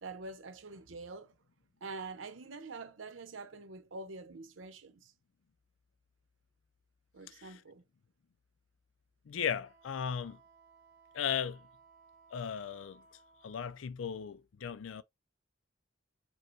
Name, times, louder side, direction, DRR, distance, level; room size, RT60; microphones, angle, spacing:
voice 1, 0.0-1.3 1.8-5.1 7.1-7.8, right 3 dB, 80° right, 0.8 m, -45 dB
voice 2, 9.3-10.4 11.1-11.6 12.3-13.0 13.4-15.0, left 7 dB, 90° left, 0.4 m, -36 dB
Wind instrument woodwind instrument, 9.6-13.8, right 5 dB, 45° right, 1.1 m, -62 dB
5.1 x 2.1 x 4.5 m
head